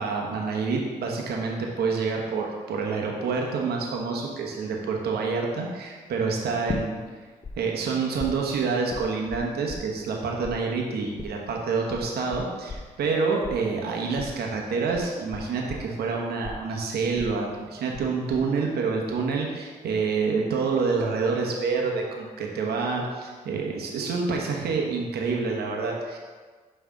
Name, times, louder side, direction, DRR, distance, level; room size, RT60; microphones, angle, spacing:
voice 1, 0.0-7.0 7.6-26.2, right 4 dB, 65° right, 0 dB, 1.1 m, -27 dB
sound 1, 6.7-7.5 7.8-10.2 10.4-18.1 18.3-18.8, left 3 dB, 30° left, 0.7 m, -37 dB
5.7 x 3.4 x 5.0 m, 1.4 s
hypercardioid pair, 50°, 17 cm